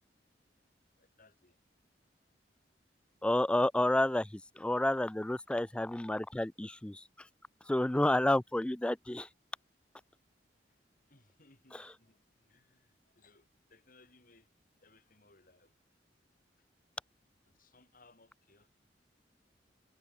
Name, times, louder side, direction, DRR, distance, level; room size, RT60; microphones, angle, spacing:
voice 1, 1.0-1.6 10.0-10.1 10.7-10.8 11.1-14.5 14.8-15.7 17.4-18.7, left 3 dB, 50° left, 5.8 m, -65 dB
voice 2, 3.2-7.0 7.7-9.3, left 1 dB, 5° left, 0.3 m, -30 dB
head